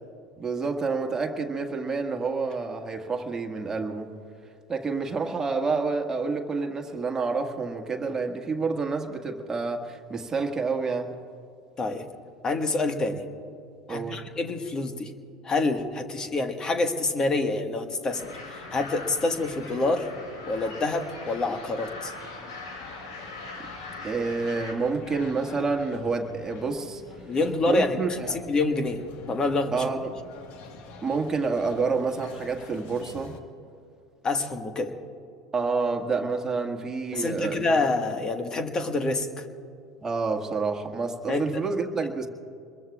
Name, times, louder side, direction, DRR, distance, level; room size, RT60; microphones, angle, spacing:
voice 1, 0.4-4.1 4.7-11.2 13.9-14.2 24.0-27.0 27.7-28.4 29.7-30.1 31.0-33.4 35.5-37.7 40.0-42.3, right 4 dB, 20° right, 3 dB, 1.8 m, -28 dB
voice 2, 12.4-13.2 13.9-15.1 15.4-20.1 20.5-22.1 27.2-29.0 29.3-29.9 34.2-34.9 37.1-39.5 41.3-41.6, left 2 dB, 30° left, 7 dB, 1.5 m, -27 dB
sound 1, 18.1-24.7, left 3 dB, 75° left, 4.0 m, -42 dB
sound 2, 18.1-33.4, left 4 dB, 55° left, 1.5 m, -47 dB
27.0 x 22.0 x 2.4 m, 2.5 s
hypercardioid pair, 75°, 2 cm